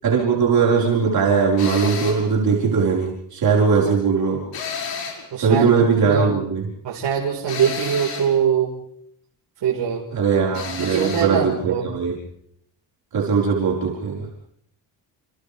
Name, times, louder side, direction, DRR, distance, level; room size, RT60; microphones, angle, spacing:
voice 1, 0.0-4.4 5.4-6.7 10.1-12.2 13.1-14.3, right 5 dB, 50° right, -4 dB, 5.2 m, -19 dB
sound 1, 1.6-2.3 4.5-5.3 7.5-8.3 10.5-11.3, left 6 dB, 75° left, 6.1 m, -31 dB
voice 2, 5.3-5.7 6.0-6.3 6.8-8.7 9.6-10.0 10.8-11.9, right 8 dB, 70° right, -4 dB, 4.9 m, -22 dB
29.5 x 29.0 x 3.6 m, 0.71 s
cardioid pair, 160°, 44 cm